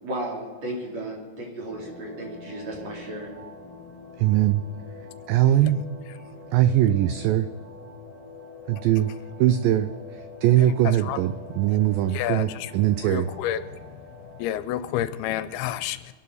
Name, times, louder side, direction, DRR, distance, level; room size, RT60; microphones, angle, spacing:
voice 1, 0.0-3.3, right 1 dB, 40° right, -3 dB, 4.4 m, -34 dB
sound 1, 1.7-14.6, left 3 dB, 15° right, 4.5 m, -45 dB
voice 2, 4.2-4.6 5.3-5.8 6.5-7.5 8.7-9.1 9.4-13.3, right 12 dB, 85° right, 11 dB, 2.0 m, -21 dB
voice 3, 12.1-12.7 13.0-14.0 14.4-16.1, left 12 dB, 85° left, 12 dB, 2.5 m, -30 dB
26.0 x 11.5 x 4.1 m, 1.5 s
omnidirectional pair, 4.6 m